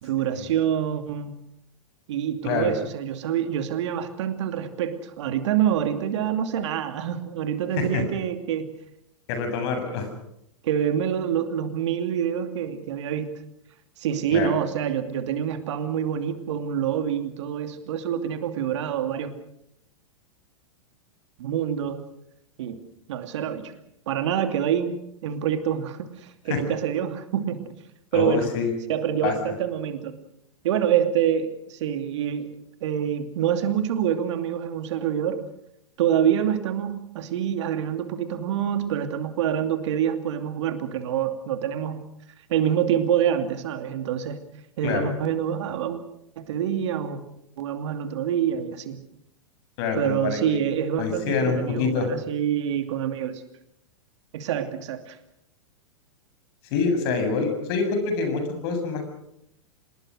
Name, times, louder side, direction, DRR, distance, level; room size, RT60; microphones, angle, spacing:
voice 1, 0.0-1.4 2.1-8.6 10.6-13.3 14.0-19.3 21.4-22.0 22.6-22.8 23.1-23.7 24.1-24.9 25.2-27.6 28.1-28.5 28.9-30.1 30.6-32.5 32.8-35.4 36.0-42.0 42.5-44.4 44.8-46.0 46.4-47.2 47.6-49.0 50.0-53.4 54.3-55.2, right 9 dB, 60° right, 8 dB, 2.7 m, -26 dB
voice 2, 9.3-10.1 14.3-14.5 26.5-26.6 28.1-28.7 29.2-29.5 44.8-45.1 49.8-50.6 51.0-52.1 56.7-59.0, left 5 dB, 50° left, 7 dB, 7.5 m, -26 dB
26.5 x 20.5 x 6.4 m, 0.77 s
hypercardioid pair, 105°, 17 cm